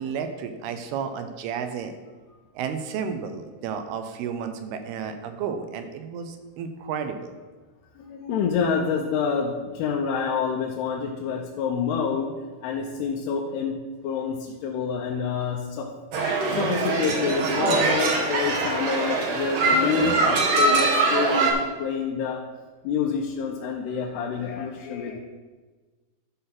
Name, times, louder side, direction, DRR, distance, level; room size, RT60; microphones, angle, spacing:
voice 1, 0.0-1.9 2.5-7.4, right 7 dB, 80° right, 7 dB, 2.6 m, -32 dB
voice 2, 8.0-15.9 16.5-21.5 21.8-22.4 22.8-25.2, left 6 dB, 85° left, 0 dB, 2.8 m, -27 dB
sound 1, 16.1-21.5, right 3 dB, 60° right, 1.7 m, -23 dB
12.0 x 4.2 x 5.8 m, 1.3 s
omnidirectional pair, 4.6 m